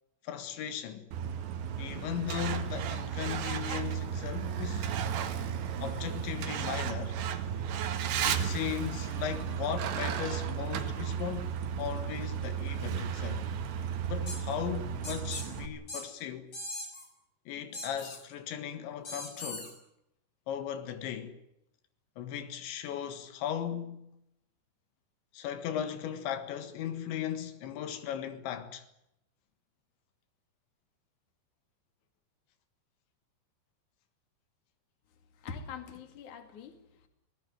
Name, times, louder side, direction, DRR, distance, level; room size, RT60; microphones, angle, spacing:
voice 1, 0.2-1.1 1.8-5.0 5.8-7.2 8.2-11.5 11.8-13.5 14.1-16.5 17.5-19.7 20.5-21.4 22.2-24.1 25.3-28.9, left 9 dB, 85° left, 4.0 m, -37 dB
Truck, 1.1-15.7, right 8 dB, 85° right, 4.2 m, -34 dB
sound 1, 14.3-14.4 15.0-15.5 15.9-16.0 16.5-17.1 17.7-18.2 19.1-19.7, left 2 dB, 30° left, 7.9 m, -40 dB
voice 2, 35.3-37.1, left 6 dB, 50° left, 3.6 m, -44 dB
24.5 x 18.0 x 9.2 m
omnidirectional pair, 5.1 m